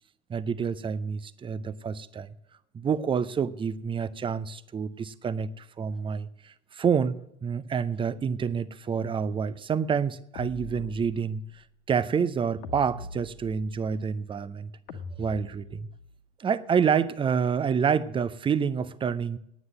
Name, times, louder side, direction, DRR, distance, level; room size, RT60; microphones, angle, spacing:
voice 1, 0.3-2.3 2.7-11.4 11.9-14.7 15.2-15.9 16.4-19.4, right 6 dB, 15° right, 0.5 m, -28 dB
sound 1, 10.3-11.4 12.6-13.9 14.9-16.1, left 3 dB, 60° left, 1.4 m, -42 dB
9.6 x 9.5 x 7.6 m
figure-of-eight pair, 80°, 38 cm